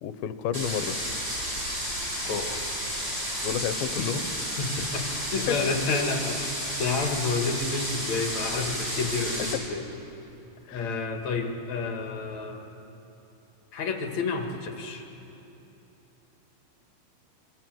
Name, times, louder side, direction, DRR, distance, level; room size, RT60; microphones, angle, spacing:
voice 1, 0.0-1.0 3.4-4.3 5.5-5.6 10.7-11.0, left 9 dB, 80° left, 10 dB, 2.6 m, -31 dB
sound 1, 0.5-9.5, equal, 20° right, 4.7 m, -32 dB
voice 2, 4.6-6.4 6.8-9.9 10.7-12.6 13.7-15.1, left 4 dB, 50° left, 3 dB, 2.9 m, -30 dB
27.5 x 23.5 x 7.7 m, 3.0 s
omnidirectional pair, 4.4 m